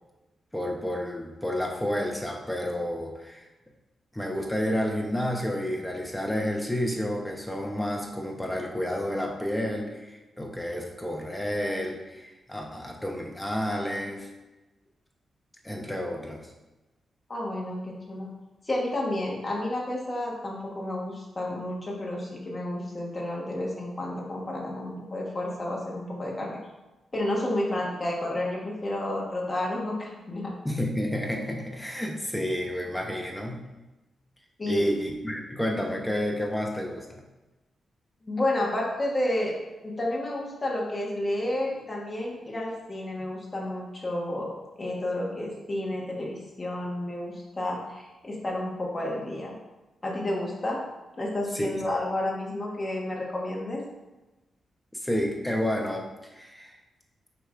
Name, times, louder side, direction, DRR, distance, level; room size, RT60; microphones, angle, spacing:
voice 1, 0.5-3.4 4.1-14.3 15.6-16.4 30.6-33.7 34.7-37.2 51.5-51.8 55.0-56.0 56.3-56.7, equal, 5° left, 0 dB, 1.0 m, -30 dB
voice 2, 17.3-18.3 18.6-26.6 27.1-30.5 34.6-34.9 38.2-39.5 39.8-44.5 44.8-49.5 50.0-50.8 51.2-53.8, left 1 dB, 25° left, -3 dB, 1.5 m, -31 dB
6.7 x 3.0 x 5.0 m, 1.1 s
wide cardioid pair, 135°, 0 cm